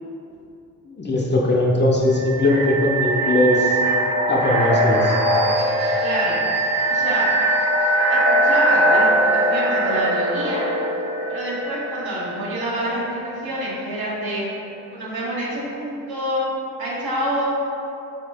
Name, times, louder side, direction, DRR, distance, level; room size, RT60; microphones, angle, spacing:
voice 1, 0.9-3.8 4.3-5.1, left 2 dB, 25° left, -2 dB, 0.6 m, -19 dB
sound 1, 2.1-12.9, right 1 dB, 25° right, 0.7 m, -21 dB
voice 2, 6.0-6.4 6.9-7.3 8.1-10.6 11.3-14.5 14.9-16.4 16.8-17.4, equal, 65° right, -7 dB, 1.2 m, -27 dB
3.1 x 2.8 x 3.4 m, 2.7 s
supercardioid pair, 45°, 40 cm